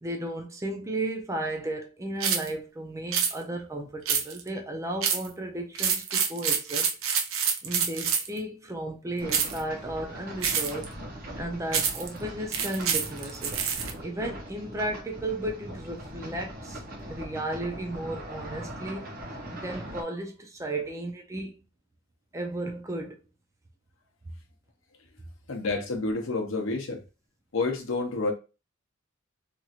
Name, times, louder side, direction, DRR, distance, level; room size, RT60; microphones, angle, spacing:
voice 1, 0.0-6.9 7.6-10.9 11.4-13.6 14.0-16.8 17.1-19.2 19.5-21.6 22.3-23.2, right 1 dB, 15° right, 0.5 m, -34 dB
sound 1, 2.2-2.5 3.1-3.3 4.1-4.5 5.0-5.3 5.7-8.4 9.3-9.6 10.4-10.8 11.7-12.1 12.5-13.9, right 7 dB, 70° right, 0.5 m, -27 dB
sound 2, 9.2-20.0, equal, 45° right, 0.9 m, -41 dB
voice 2, 25.5-27.0 27.5-28.3, left 3 dB, 65° left, 0.6 m, -29 dB
3.0 x 2.8 x 2.4 m
head